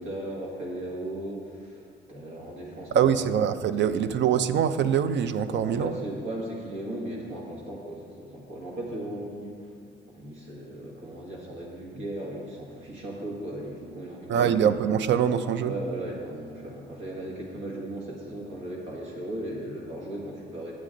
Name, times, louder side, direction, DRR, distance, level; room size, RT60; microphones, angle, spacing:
voice 1, 0.0-1.8 2.1-3.3 3.7-4.0 5.4-9.7 10.1-14.5 15.6-20.7, right 1 dB, 85° right, -2 dB, 1.8 m, -37 dB
voice 2, 2.9-6.0 14.3-15.7, right 8 dB, 65° right, 12 dB, 0.4 m, -24 dB
9.0 x 7.5 x 3.8 m, 2.1 s
cardioid pair, 90°, 20 cm